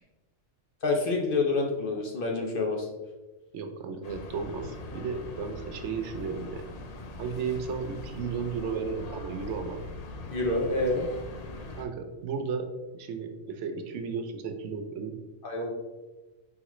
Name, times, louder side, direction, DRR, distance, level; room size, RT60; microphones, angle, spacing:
voice 1, 0.8-2.9 10.3-11.1 15.4-15.7, left 3 dB, 55° left, 0 dB, 0.7 m, -27 dB
voice 2, 3.5-6.6 7.2-9.8 11.8-12.6 12.9-15.1, right 5 dB, 70° right, 5 dB, 0.9 m, -34 dB
sound 1, 4.0-11.8, left 2 dB, 90° left, 0.3 m, -41 dB
4.8 x 3.6 x 3.0 m, 1.1 s
omnidirectional pair, 1.3 m